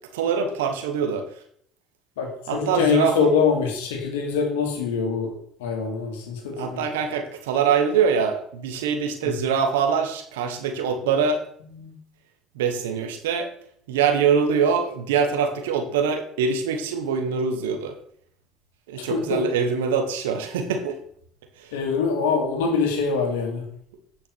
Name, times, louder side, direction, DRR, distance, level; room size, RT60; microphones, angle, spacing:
voice 1, 0.1-1.3 2.5-3.3 6.6-11.4 12.5-13.5 13.9-17.9 18.9-21.0 21.6-21.7, right 6 dB, 90° right, 6 dB, 1.2 m, -24 dB
voice 2, 2.2-5.3 5.6-6.9 9.2-9.4 11.7-11.9 19.0-19.4 21.7-23.7, left 5 dB, 85° left, 3 dB, 2.0 m, -24 dB
9.1 x 5.8 x 4.6 m, 0.65 s
supercardioid pair, 75°, 0 cm